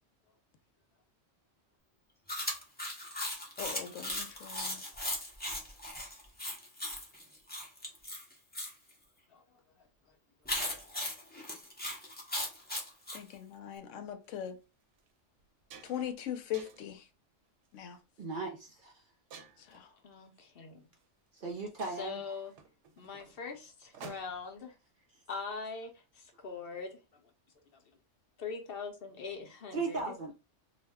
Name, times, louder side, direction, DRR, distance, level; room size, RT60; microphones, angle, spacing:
Chewing mastication, 2.3-8.7 10.5-13.2, left 1 dB, 10° left, 0.5 m, -38 dB
voice 1, 3.6-4.8 13.1-14.6 15.8-17.1 17.7-18.0 19.6-19.9, left 10 dB, 85° left, 0.9 m, -40 dB
voice 2, 9.3-9.8 20.0-20.9 22.0-22.5 23.0-24.8 25.3-27.2 27.7-27.8 28.4-30.2, left 5 dB, 60° left, 0.7 m, -42 dB
sound 1, 14.3-14.4 15.0-15.1 15.4-16.1 16.5-17.0 17.7-18.0 19.3-19.8 21.0-21.1 21.4-21.5 21.8-24.6, right 6 dB, 75° right, 0.9 m, -52 dB
voice 3, 18.2-18.9 21.4-22.2 29.7-30.3, right 4 dB, 55° right, 0.6 m, -37 dB
2.4 x 2.1 x 3.4 m
omnidirectional pair, 1.3 m